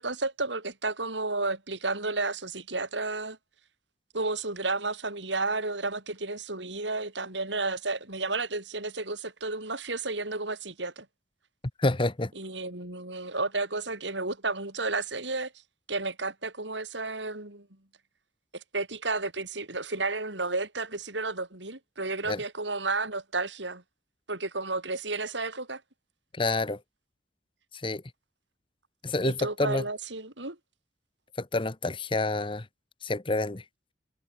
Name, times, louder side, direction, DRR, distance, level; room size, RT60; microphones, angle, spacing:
voice 1, 0.0-3.4 4.1-11.1 12.4-15.5 15.9-17.7 18.5-23.8 24.3-25.8 29.2-30.6, right 3 dB, 85° right, 7.7 m, -32 dB
voice 2, 11.8-12.3 22.3-22.4 26.3-26.8 27.8-28.0 29.0-29.8 31.4-32.7 33.0-33.6, left 2 dB, 30° left, 1.0 m, -28 dB
head